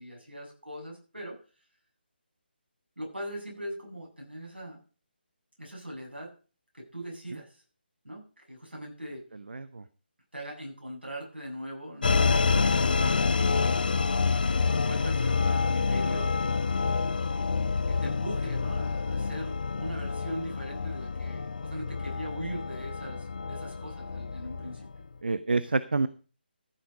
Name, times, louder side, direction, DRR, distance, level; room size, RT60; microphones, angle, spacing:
voice 1, 0.0-1.4 3.0-4.8 5.6-6.3 6.7-7.6 8.0-9.2 10.3-13.2 13.7-14.4 14.8-16.4 17.9-25.0, equal, 80° right, 0 dB, 7.6 m, -40 dB
voice 2, 9.5-9.8 25.2-26.1, right 3 dB, 65° right, 15 dB, 0.7 m, -28 dB
sound 1, 12.0-25.0, left 4 dB, 55° left, 0.6 m, -28 dB
14.5 x 7.8 x 5.2 m, 0.37 s
figure-of-eight pair, 150°, 6 cm